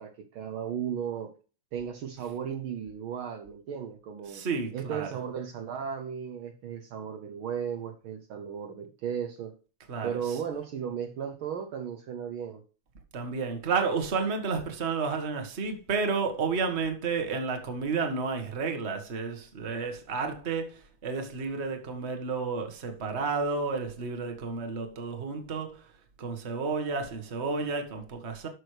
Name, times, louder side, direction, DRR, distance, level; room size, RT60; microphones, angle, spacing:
voice 1, 0.0-1.3 1.7-4.4 4.7-9.6 10.0-12.6, right 8 dB, 85° right, 1.1 m, -35 dB
voice 2, 4.3-5.1 9.9-10.4 13.1-25.9 26.2-28.5, right 4 dB, 35° right, 1.1 m, -31 dB
12.0 x 6.4 x 3.3 m
omnidirectional pair, 3.5 m